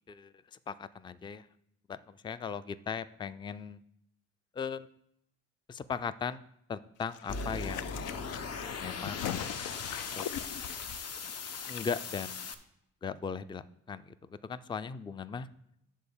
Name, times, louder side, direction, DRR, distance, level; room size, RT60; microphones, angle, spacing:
voice 1, 0.7-1.5 1.9-3.8 4.5-4.9 5.7-6.4 6.7-8.1 8.8-9.2 10.1-10.3 11.7-12.4 13.0-15.5, left 6 dB, 15° left, 15 dB, 0.3 m, -38 dB
sound 1, 7.0-11.8 12.1-12.2, left 9 dB, 85° left, 0.6 m, -41 dB
sound 2, 7.3-12.5, left 4 dB, 55° left, 1.0 m, -39 dB
9.2 x 3.9 x 6.9 m, 0.77 s
cardioid pair, 90°, 30 cm